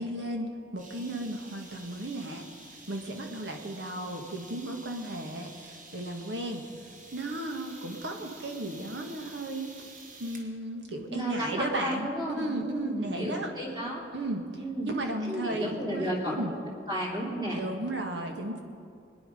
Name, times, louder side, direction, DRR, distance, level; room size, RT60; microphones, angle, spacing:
voice 1, 0.0-2.5 2.9-6.7 7.1-13.5 14.1-14.5 14.8-16.5 17.6-18.6, right 1 dB, 80° right, 3 dB, 1.8 m, -35 dB
sound 1, 0.8-10.5, right 2 dB, 45° right, 1.7 m, -50 dB
voice 2, 11.1-14.0 14.6-14.9 15.2-16.4 16.9-17.6, equal, 20° right, -4 dB, 3.0 m, -33 dB
21.5 x 9.8 x 5.3 m, 2.4 s
head